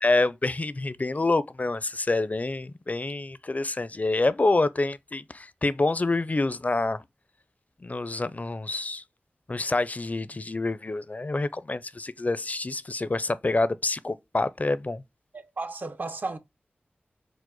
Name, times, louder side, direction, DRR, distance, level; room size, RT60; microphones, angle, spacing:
voice 1, 0.0-7.0 7.8-9.0 9.5-15.0, left 2 dB, 40° left, 0.4 m, -27 dB
voice 2, 15.3-16.4, right 3 dB, 50° right, 0.7 m, -34 dB
4.8 x 2.1 x 3.9 m
cardioid pair, 45°, 4 cm